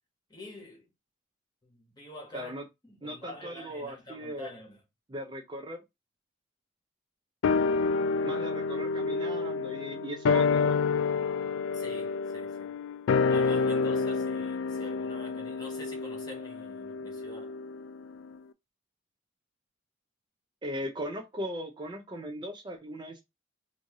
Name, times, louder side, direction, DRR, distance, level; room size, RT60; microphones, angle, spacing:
voice 1, 0.3-0.9 1.6-4.8 11.7-12.7 13.3-17.6, left 1 dB, 20° left, 1.1 m, -47 dB
voice 2, 2.3-2.6 3.0-4.5 5.1-5.8 8.2-10.8 20.6-23.2, equal, 20° right, 0.4 m, -38 dB
sound 1, 7.4-18.0 18.3-18.4, left 4 dB, 70° left, 0.3 m, -29 dB
3.1 x 2.6 x 3.6 m
head